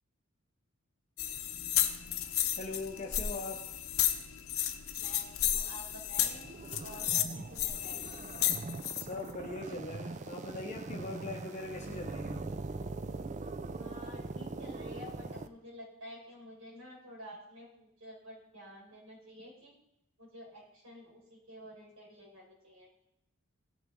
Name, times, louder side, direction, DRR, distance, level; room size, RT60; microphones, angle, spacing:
sound 1, 1.2-9.0, left 11 dB, 80° left, 0.8 m, -33 dB
voice 1, 2.6-3.8 7.4-7.5 9.0-12.5, left 2 dB, 35° left, 2 dB, 0.8 m, -41 dB
voice 2, 5.0-6.4 6.8-8.0 13.8-19.7 20.2-22.9, equal, 85° right, -3 dB, 4.8 m, -50 dB
sound 2, 6.2-15.5, right 3 dB, 35° right, 0.4 m, -42 dB
16.5 x 6.7 x 3.7 m, 0.81 s
head